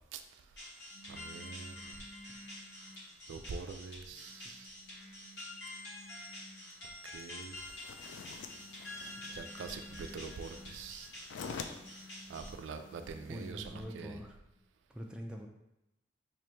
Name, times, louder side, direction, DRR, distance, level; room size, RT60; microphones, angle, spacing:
sound 1, 0.6-12.5, left 1 dB, 60° left, 1.0 m, -48 dB
sound 2, 0.9-3.1 3.7-6.9 8.0-11.0 11.4-14.4, equal, 45° left, 1.4 m, -56 dB
voice 1, 1.1-1.9 3.3-4.7 7.1-7.6 9.3-11.1 12.3-14.2, right 5 dB, 85° right, 7 dB, 0.3 m, -44 dB
sound 3, 7.6-13.5, left 5 dB, 80° left, 0.3 m, -49 dB
voice 2, 13.3-14.4 14.9-15.5, equal, 5° right, 1 dB, 0.3 m, -44 dB
3.1 x 2.5 x 4.4 m, 0.88 s
head